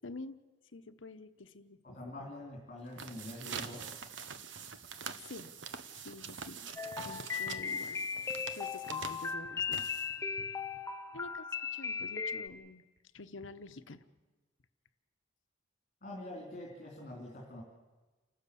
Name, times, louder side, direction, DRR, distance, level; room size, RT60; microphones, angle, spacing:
voice 1, 0.0-0.4 0.7-2.3 5.2-5.5 6.0-6.7 7.0-8.1 8.5-9.9 10.2-10.5 11.1-12.8 13.1-14.0, left 2 dB, 85° left, 11 dB, 1.0 m, -48 dB
voice 2, 1.8-3.9 16.0-17.6, left 1 dB, 45° left, -1 dB, 3.7 m, -45 dB
sound 1, 2.8-10.4, right 6 dB, 70° right, 1.2 m, -45 dB
sound 2, 6.8-12.5, left 6 dB, 15° left, 0.8 m, -37 dB
29.0 x 12.5 x 8.5 m, 1.2 s
head